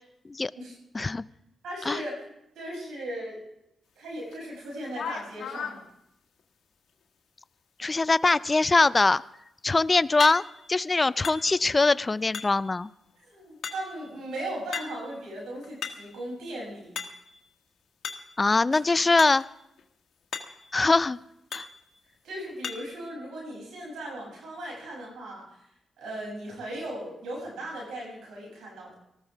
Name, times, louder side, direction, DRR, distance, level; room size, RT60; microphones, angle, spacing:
voice 1, 1.6-2.3 2.6-3.4 4.0-5.8 13.3-16.9 18.7-18.8 22.2-25.4 26.0-29.0, right 1 dB, 90° right, -2 dB, 7.1 m, -37 dB
sound 1, 4.3-4.4 4.9-5.8 10.2-10.7 11.2-11.8 12.3-12.8 13.6-14.1 14.7-15.1 15.6-16.2 17.0-17.4 18.0-18.4 19.2-19.5 19.8-19.9 20.3-20.7 21.5-21.8 22.6-23.0, left 7 dB, 80° left, 1.3 m, -37 dB
voice 2, 7.8-9.2 9.6-10.4 10.7-12.9 18.4-19.4 20.7-21.2 21.5-21.7, left 3 dB, 35° left, 18 dB, 0.4 m, -22 dB
19.0 x 14.5 x 3.5 m, 0.81 s
cardioid pair, 60°, 0 cm